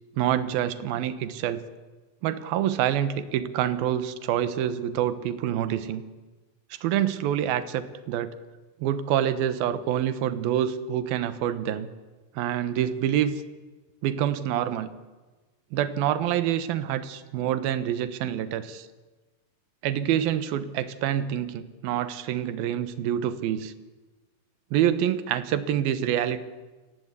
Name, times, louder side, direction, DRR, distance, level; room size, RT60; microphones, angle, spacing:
voice 1, 0.2-1.6 2.2-6.0 6.8-8.3 8.8-11.9 12.4-13.4 14.0-14.9 15.7-18.9 19.8-23.7 24.7-26.4, right 10 dB, 80° right, 12 dB, 3.0 m, -26 dB
28.5 x 19.0 x 8.3 m, 1.2 s
omnidirectional pair, 4.2 m